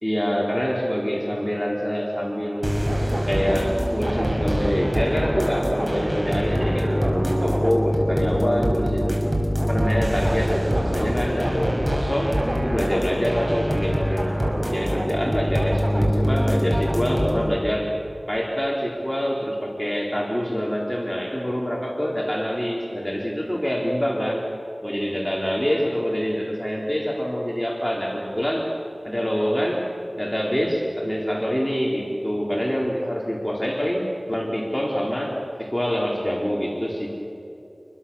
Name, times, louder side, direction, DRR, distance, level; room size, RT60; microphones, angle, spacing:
voice 1, 0.0-2.9 3.3-9.1 9.7-14.4 14.7-17.9 18.3-24.5 24.8-28.7 29.0-29.9 30.2-37.1, equal, 10° left, -3 dB, 4.0 m, -25 dB
sound 1, 2.6-17.4, equal, 35° right, 6.0 m, -24 dB
29.0 x 22.5 x 7.2 m, 2.9 s
wide cardioid pair, 45°, 0 cm